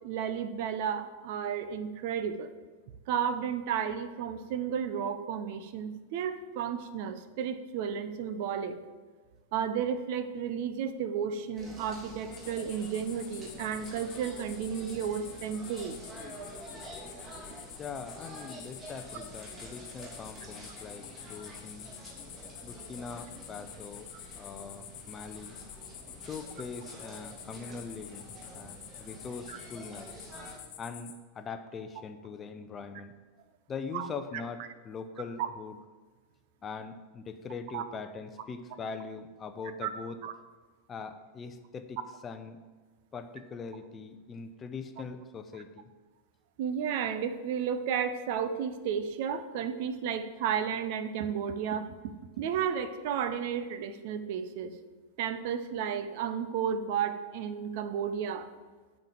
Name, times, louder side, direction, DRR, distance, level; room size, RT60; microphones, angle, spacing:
voice 1, 0.0-2.5 3.1-8.8 9.5-16.0 29.5-29.6 33.9-34.1 35.4-35.5 37.7-37.8 39.8-39.9 40.2-40.3 46.6-54.7 55.2-58.5, right 8 dB, 50° right, 11 dB, 0.7 m, -33 dB
sound 1, 11.5-30.6, equal, 20° right, 2.9 m, -48 dB
sound 2, 12.3-31.2, left 9 dB, 45° left, 1.2 m, -48 dB
voice 2, 17.8-21.9 22.6-25.6 26.2-30.1 30.8-33.1 33.7-35.8 36.6-40.2 40.9-42.6 43.1-45.9, left 5 dB, 25° left, 9 dB, 0.7 m, -42 dB
9.1 x 5.2 x 7.5 m, 1.4 s
figure-of-eight pair, 90°, 0 cm